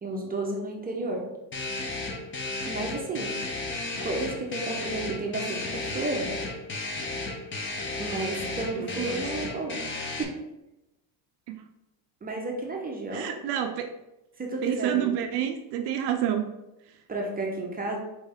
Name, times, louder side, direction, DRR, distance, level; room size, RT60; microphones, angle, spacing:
voice 1, 0.0-1.3 2.7-3.4 4.0-6.3 8.0-9.8 10.2-10.4 12.2-13.3 14.4-15.3 17.1-18.0, right 2 dB, 20° right, 0 dB, 0.7 m, -32 dB
sound 1, 1.5-10.2, left 3 dB, 25° left, 0.6 m, -34 dB
voice 2, 8.4-9.2 11.5-11.6 13.1-13.9 14.6-16.5, right 10 dB, 55° right, 6 dB, 0.5 m, -29 dB
4.3 x 3.2 x 3.5 m, 0.93 s
cardioid pair, 125°, 48 cm